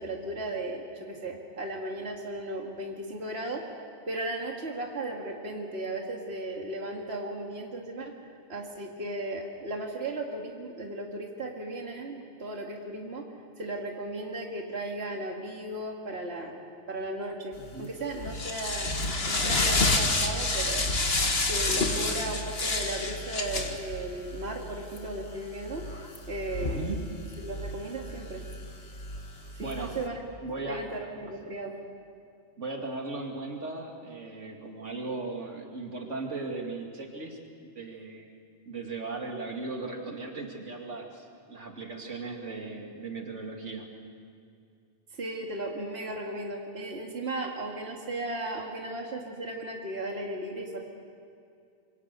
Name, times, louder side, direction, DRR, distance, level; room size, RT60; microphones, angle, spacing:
voice 1, 0.0-3.6 4.1-8.1 8.5-13.2 13.6-16.6 16.9-18.9 19.3-20.9 21.5-25.8 26.3-26.9 27.4-28.4 29.6-30.2 30.7-31.8 45.1-50.8, right 2 dB, 60° right, 0 dB, 2.3 m, -36 dB
sound 1, 17.6-30.1, left 2 dB, 55° left, 2.1 m, -30 dB
voice 2, 17.6-17.9 26.6-27.0 29.6-30.0 30.4-30.8 32.6-37.4 37.8-38.3 38.7-43.9, right 3 dB, 85° right, 1 dB, 2.7 m, -37 dB
26.5 x 24.0 x 6.8 m, 2.4 s
omnidirectional pair, 1.2 m